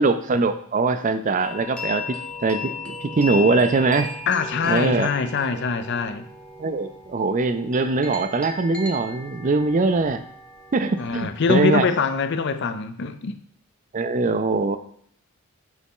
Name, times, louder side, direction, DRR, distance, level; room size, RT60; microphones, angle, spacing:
voice 1, 0.0-4.1 4.6-5.1 6.6-10.2 10.7-11.9 13.9-14.8, right 3 dB, 35° right, 0.4 m, -22 dB
sound 1, 1.4-11.2, left 3 dB, 5° left, 0.7 m, -36 dB
voice 2, 4.3-6.3 11.0-13.4, left 5 dB, 50° left, 0.5 m, -23 dB
6.1 x 4.1 x 3.8 m
head